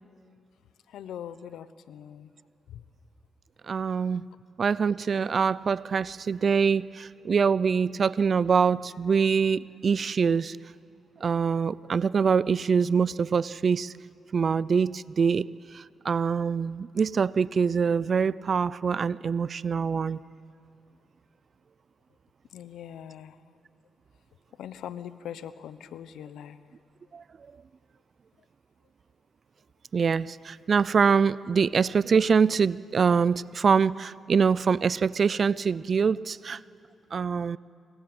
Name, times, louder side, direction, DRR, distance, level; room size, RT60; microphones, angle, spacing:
voice 1, 0.9-2.3 2.7-2.8 22.5-23.4 24.6-26.6, left 9 dB, 80° left, 14 dB, 1.0 m, -41 dB
voice 2, 3.7-4.2 4.6-10.6 11.2-13.9 14.3-15.5 15.7-20.2 27.1-27.2 29.9-36.6 37.1-37.6, right 6 dB, 55° right, 21 dB, 0.6 m, -24 dB
27.5 x 25.5 x 8.0 m, 2.5 s
supercardioid pair, 60°, 0 cm